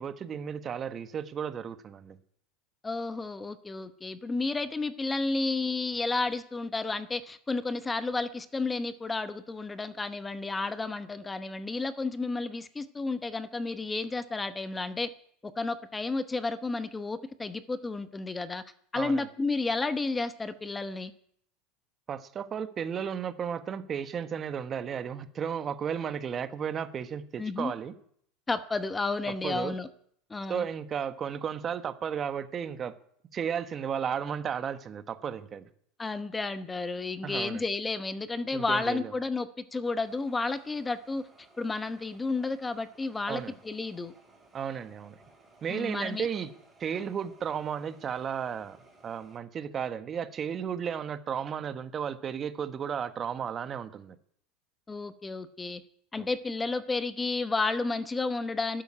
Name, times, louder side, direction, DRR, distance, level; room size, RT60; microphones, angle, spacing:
voice 1, 0.0-2.2 18.9-19.3 22.1-27.9 29.3-29.7 30.5-32.9 33.3-35.7 37.2-37.6 38.5-39.1 43.3-43.5 44.5-45.2 45.6-46.5 46.8-48.8 49.0-54.2 56.2-56.3, right 7 dB, 35° right, 11 dB, 1.2 m, -34 dB
voice 2, 2.8-15.1 15.4-18.6 18.9-21.1 27.4-27.7 28.5-29.9 30.3-30.6 36.0-41.2 41.6-44.1 45.7-46.3 54.9-55.8 56.1-58.8, left 3 dB, 15° left, 12 dB, 0.9 m, -32 dB
sound 1, 40.0-49.4, right 3 dB, 15° right, 6.0 m, -60 dB
12.0 x 9.1 x 10.0 m, 0.65 s
hypercardioid pair, 100°, 0 cm